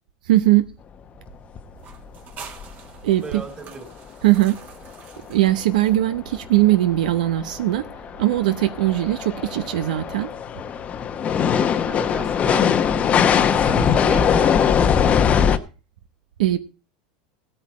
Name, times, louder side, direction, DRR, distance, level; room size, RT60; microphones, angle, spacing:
voice 1, 0.3-0.6 3.0-3.2 4.2-4.6 5.3-7.8 8.2-10.3 16.4-16.6, right 15 dB, 85° right, 0.9 m, -19 dB
sound 1, 1.3-1.4 1.6-1.7 1.9-2.1 2.6-2.7 5.7-5.8 6.4-15.6, left 8 dB, 30° left, 0.9 m, -21 dB
sound 2, 1.8-6.3, right 6 dB, 40° right, 2.2 m, -45 dB
voice 2, 3.2-3.9 11.4-15.4, right 4 dB, 20° right, 2.6 m, -35 dB
16.0 x 9.0 x 4.2 m
supercardioid pair, 120°, 4 cm